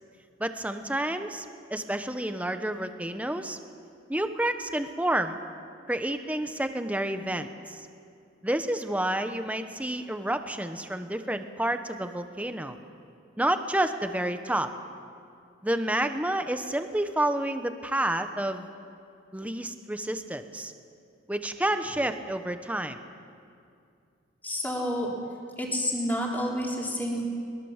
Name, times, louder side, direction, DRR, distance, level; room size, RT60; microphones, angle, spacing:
voice 1, 0.4-1.4 1.7-3.6 4.1-5.4 5.9-7.9 8.4-12.8 13.4-14.7 15.6-18.7 19.3-20.7 21.3-23.0, right 1 dB, 5° right, 8 dB, 1.0 m, -29 dB
voice 2, 24.4-25.1 25.6-27.2, equal, 10° left, -2 dB, 3.7 m, -29 dB
22.5 x 21.5 x 7.3 m, 2.4 s
head